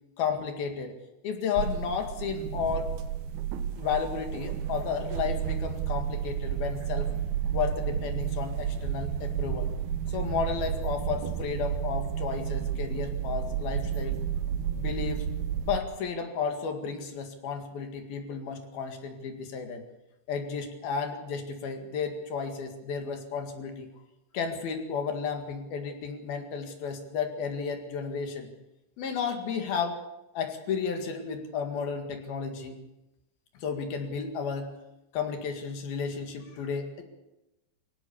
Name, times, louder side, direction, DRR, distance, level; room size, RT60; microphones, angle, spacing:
voice 1, 0.2-1.0 1.2-2.9 3.8-7.1 7.5-9.7 10.1-14.2 14.7-15.3 15.6-19.8 20.3-23.9 24.3-28.5 29.0-30.0 30.3-32.8 33.6-34.7 35.1-37.0, left 6 dB, 60° left, 5 dB, 3.6 m, -33 dB
sound 1, 1.6-15.8, right 9 dB, 70° right, 2.7 m, -31 dB
24.0 x 17.0 x 7.0 m, 0.95 s
omnidirectional pair, 5.2 m